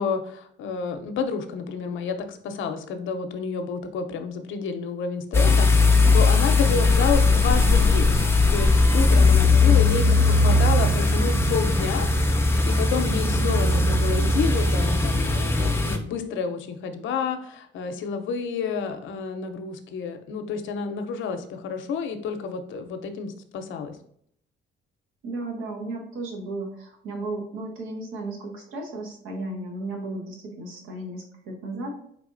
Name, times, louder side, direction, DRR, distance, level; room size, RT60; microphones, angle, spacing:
voice 1, 0.0-5.7 6.1-8.2 8.5-24.0, left 5 dB, 75° left, 7 dB, 0.6 m, -30 dB
sound 1, 5.3-16.0, left 3 dB, 10° left, 0.5 m, -19 dB
voice 2, 9.6-10.3 25.2-32.0, right 2 dB, 90° right, 1 dB, 1.0 m, -34 dB
4.0 x 3.4 x 2.5 m, 0.67 s
cardioid pair, 90°, 20 cm